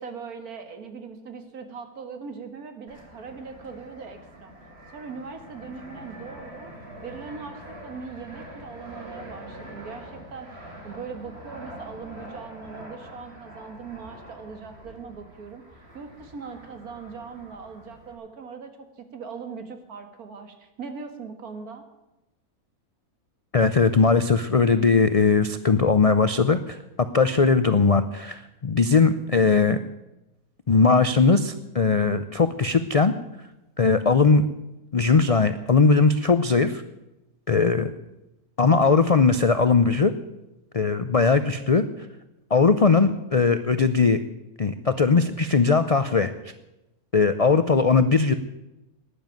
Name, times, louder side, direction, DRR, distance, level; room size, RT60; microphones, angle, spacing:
voice 1, 0.0-4.5 4.9-6.7 7.0-15.6 15.9-21.9, right 5 dB, 80° right, 7 dB, 2.1 m, -40 dB
Fixed-wing aircraft airplane, 2.9-18.1, right 1 dB, 45° right, 3.0 m, -44 dB
voice 2, 23.5-29.8 30.7-33.1 33.8-34.4 34.9-36.8 37.5-37.9 38.6-40.1 40.7-41.8 42.5-44.2 44.6-46.3 47.1-48.3, left 4 dB, 60° left, 11 dB, 0.3 m, -19 dB
12.5 x 10.0 x 9.1 m, 0.95 s
omnidirectional pair, 1.5 m